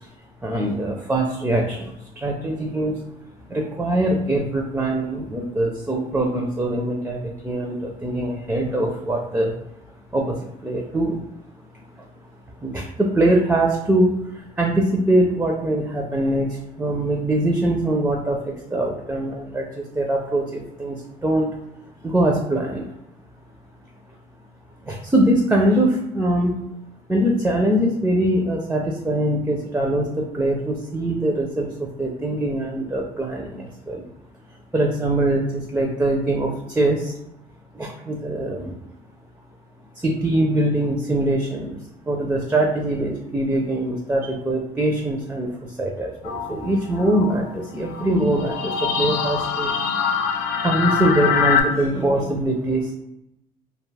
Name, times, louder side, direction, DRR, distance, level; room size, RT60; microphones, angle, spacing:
voice 1, 0.4-3.0 3.5-9.5 10.1-11.2 12.6-21.0 21.2-21.5 22.0-22.9 24.9-26.5 27.1-31.7 32.0-34.1 34.7-37.1 37.7-38.8 40.0-41.8 42.1-49.7 50.6-52.9, right 1 dB, 10° right, 0 dB, 0.4 m, -22 dB
sound 1, 46.2-51.6, left 6 dB, 85° left, 0.4 m, -24 dB
2.3 x 2.3 x 3.2 m, 0.85 s
cardioid pair, 110°, 17 cm